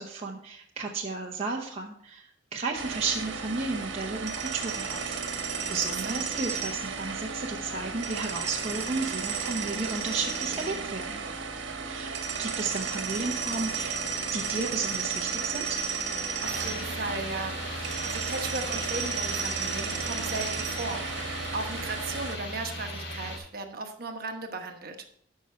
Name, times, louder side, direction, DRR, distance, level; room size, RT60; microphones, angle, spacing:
voice 1, 0.0-5.2 5.7-11.2 11.9-14.0 14.3-15.8, right 3 dB, 35° right, -1 dB, 0.9 m, -33 dB
sound 1, 2.7-22.3, right 5 dB, 65° right, 1.4 m, -33 dB
sound 2, 16.4-23.4, left 1 dB, 60° left, 3.2 m, -38 dB
voice 2, 16.4-21.0 21.5-25.0, right 3 dB, 50° right, 4 dB, 1.2 m, -36 dB
12.5 x 5.7 x 4.4 m, 0.66 s
head